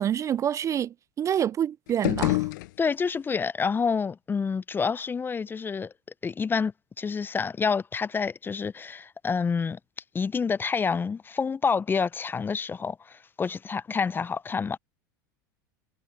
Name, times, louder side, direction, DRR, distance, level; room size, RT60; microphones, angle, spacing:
voice 1, 0.0-2.5, right 9 dB, 30° right, 0.4 m, -27 dB
sound 1, 1.9-3.3, left 21 dB, 65° left, 0.7 m, -28 dB
voice 2, 2.8-5.9 6.2-9.8 10.1-14.8, left 5 dB, 20° left, 0.6 m, -28 dB
hypercardioid pair, 90°, 11 cm